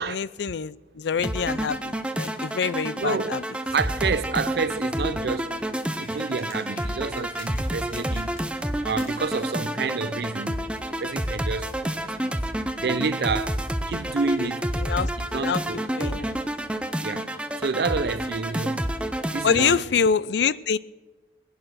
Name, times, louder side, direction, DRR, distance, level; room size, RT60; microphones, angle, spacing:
voice 1, 0.0-3.4 14.8-15.1 15.4-15.6 16.0-16.3 19.4-20.8, left 6 dB, 80° left, 0.4 m, -25 dB
sound 1, 1.2-19.7, right 1 dB, 5° right, 0.6 m, -29 dB
voice 2, 3.0-3.3 3.7-5.7 6.0-8.4 8.8-10.6 11.0-12.4 12.8-14.7 15.2-16.3 17.0-18.9 19.3-19.8, right 4 dB, 65° right, 0.5 m, -29 dB
sound 2, 5.1-8.6 8.9-10.9 11.7-11.8, left 3 dB, 50° left, 3.0 m, -49 dB
19.0 x 11.0 x 6.2 m
head